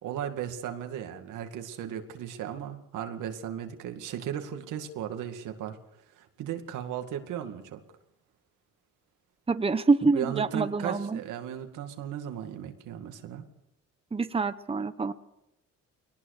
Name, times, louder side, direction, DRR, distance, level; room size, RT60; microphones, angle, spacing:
voice 1, 0.0-5.8 6.2-7.8 10.1-13.4, right 9 dB, 90° right, 6 dB, 2.2 m, -36 dB
voice 2, 9.5-11.2 14.1-15.1, right 4 dB, 20° right, 11 dB, 1.0 m, -26 dB
21.5 x 18.5 x 6.7 m, 0.88 s
cardioid pair, 90°, 30 cm